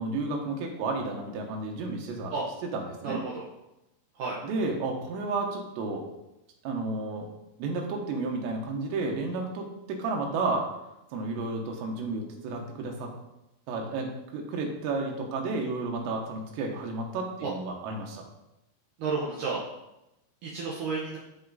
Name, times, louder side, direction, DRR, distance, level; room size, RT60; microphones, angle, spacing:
voice 1, 0.0-2.3 2.7-3.2 4.4-6.1 6.6-7.3 7.6-10.7 11.1-13.1 13.7-18.2, right 3 dB, 90° right, 1 dB, 3.3 m, -32 dB
voice 2, 3.0-3.5 4.2-4.4 17.4-17.5 19.0-19.6 20.4-21.2, right 4 dB, 70° right, -4 dB, 2.1 m, -31 dB
12.0 x 4.3 x 4.0 m, 0.90 s
omnidirectional pair, 4.8 m